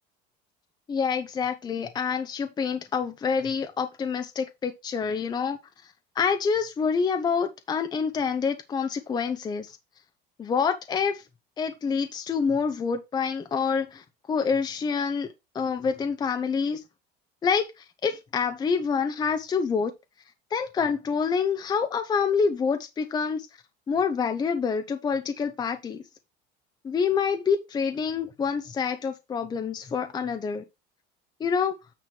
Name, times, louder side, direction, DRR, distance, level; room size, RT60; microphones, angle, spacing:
voice 1, 0.9-5.6 6.2-9.8 10.4-11.2 11.6-15.3 15.5-16.8 17.4-19.9 20.5-23.5 23.9-26.0 26.8-30.6 31.4-31.7, left 6 dB, 20° left, 0.7 m, -27 dB
9.0 x 3.1 x 6.0 m
cardioid pair, 140°, 20 cm